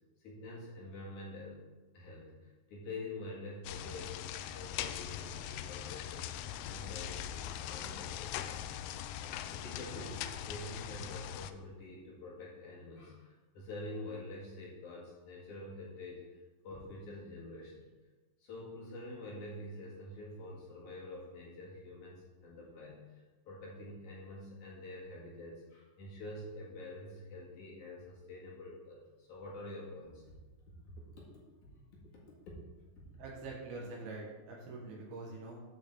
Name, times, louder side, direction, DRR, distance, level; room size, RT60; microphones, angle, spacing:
voice 1, 0.2-1.6 1.9-8.6 9.5-16.4 16.6-17.9 18.4-30.2 31.1-31.3, left 2 dB, 55° left, -5 dB, 3.0 m, -47 dB
sound 1, 3.6-11.5, left 11 dB, 85° left, 2.5 m, -41 dB
voice 2, 33.2-35.6, right 3 dB, 75° right, -3 dB, 3.5 m, -45 dB
12.5 x 5.8 x 3.7 m, 1.2 s
omnidirectional pair, 4.6 m